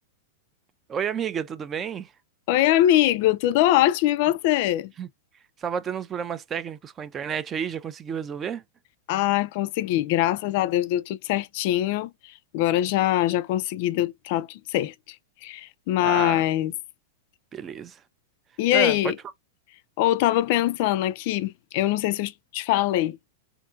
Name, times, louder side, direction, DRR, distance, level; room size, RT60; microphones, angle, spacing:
voice 1, 0.9-2.1 5.0-5.1 5.6-8.6 16.0-16.4 17.5-18.0 18.7-19.0, right 7 dB, 25° right, 0.3 m, -31 dB
voice 2, 2.5-4.9 9.1-12.1 12.5-14.9 15.4-16.7 18.6-19.2 20.0-23.2, left 14 dB, 55° left, 0.3 m, -23 dB
2.6 x 2.5 x 2.4 m
hypercardioid pair, 125°, 0 cm